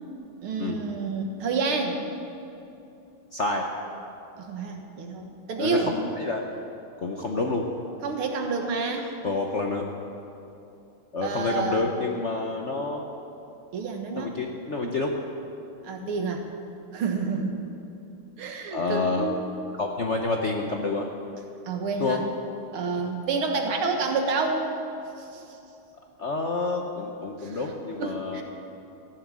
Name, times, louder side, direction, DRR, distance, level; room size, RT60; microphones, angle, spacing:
voice 1, 0.4-2.0 4.4-5.9 8.0-9.1 11.2-11.9 13.7-14.4 15.8-16.5 16.9-17.6 18.4-19.5 21.7-22.2 22.7-24.7 25.2-25.4 27.4-27.6 28.0-28.4, right 4 dB, 80° right, 3 dB, 2.3 m, -29 dB
voice 2, 3.3-3.7 5.6-6.4 7.0-7.6 9.2-9.8 11.1-13.0 14.2-15.1 16.0-16.1 18.7-19.3 19.7-21.1 22.0-22.2 26.2-28.4, left 3 dB, 50° left, 1 dB, 0.8 m, -28 dB
14.5 x 11.0 x 7.4 m, 2.8 s
omnidirectional pair, 2.4 m